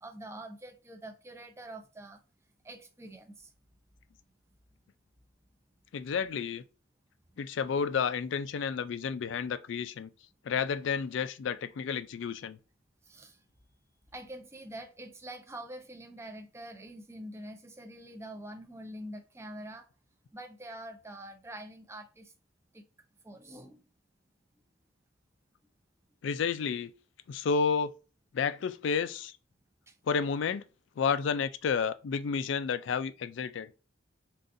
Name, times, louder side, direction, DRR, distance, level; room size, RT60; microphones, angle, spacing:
voice 1, 0.0-2.2 2.6-3.5 13.0-13.4 14.1-19.9 20.3-22.3 22.7-22.8 23.2-23.8 29.9-30.0, right 1 dB, 15° right, 0.4 m, -45 dB
voice 2, 5.9-6.6 7.4-10.1 10.4-12.6 26.2-26.9 27.3-27.9 28.3-29.3 30.1-30.6 31.0-33.7, left 6 dB, 65° left, 0.3 m, -31 dB
3.7 x 2.5 x 2.5 m
head